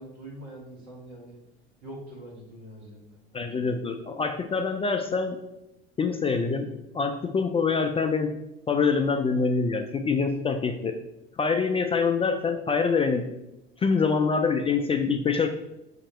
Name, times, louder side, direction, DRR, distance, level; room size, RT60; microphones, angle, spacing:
voice 1, 0.0-1.4 1.8-3.2, right 1 dB, 90° right, -5 dB, 1.6 m, -43 dB
voice 2, 3.3-5.4 6.0-6.7 6.9-8.3 8.7-10.9 11.4-13.2 13.8-15.5, left 5 dB, 20° left, 6 dB, 0.3 m, -25 dB
5.8 x 2.9 x 3.0 m, 0.88 s
hypercardioid pair, 70°, 31 cm